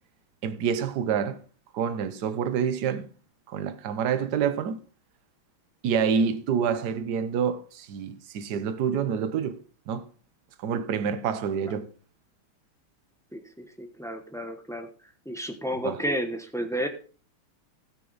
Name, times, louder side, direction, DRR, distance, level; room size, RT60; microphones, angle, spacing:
voice 1, 0.4-1.4 1.7-3.1 3.5-4.8 5.8-9.6 9.9-10.1 10.6-11.9 15.8-16.0, right 7 dB, 60° right, 1.4 m, -27 dB
voice 2, 13.3-14.9 15.2-16.9, equal, 5° left, 0.4 m, -32 dB
17.5 x 6.4 x 4.1 m
omnidirectional pair, 2.3 m